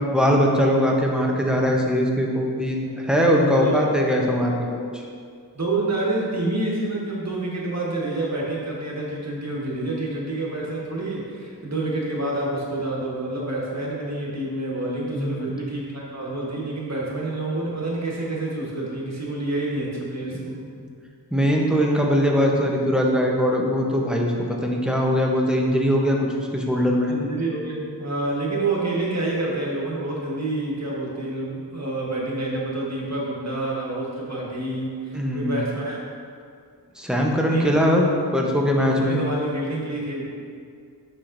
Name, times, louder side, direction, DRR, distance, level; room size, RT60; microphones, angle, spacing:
voice 1, 0.0-5.0 15.2-15.4 21.3-27.1 35.1-35.6 37.0-38.1 38.3-39.2, equal, ahead, -1 dB, 0.9 m, -21 dB
voice 2, 3.5-3.8 5.5-20.5 27.1-36.0 37.5-37.7 38.7-40.2, right 2 dB, 40° right, -4 dB, 1.5 m, -28 dB
7.3 x 5.8 x 2.6 m, 2.2 s
wide cardioid pair, 55°, 43 cm